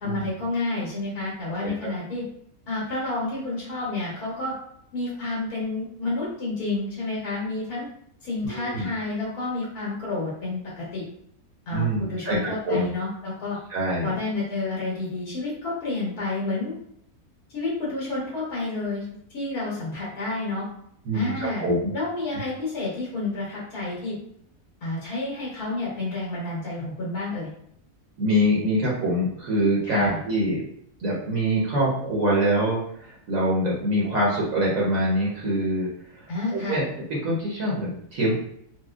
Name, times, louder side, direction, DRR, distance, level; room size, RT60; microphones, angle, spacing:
voice 1, 0.0-2.2 2.7-4.5 4.9-7.9 8.2-11.0 11.7-13.6 14.0-16.7 17.5-20.6 21.1-21.6 21.9-24.2 24.8-27.5 29.8-30.2 36.3-36.8, left 2 dB, 80° left, -7 dB, 1.5 m, -30 dB
voice 2, 8.5-8.9 11.7-12.4 12.6-12.9 13.7-14.1 21.1-21.3 21.6-21.9 28.2-30.6 31.0-35.9 36.2-36.8 37.1-38.4, equal, 65° right, -5 dB, 1.2 m, -24 dB
4.1 x 2.2 x 2.3 m, 0.70 s
omnidirectional pair, 1.6 m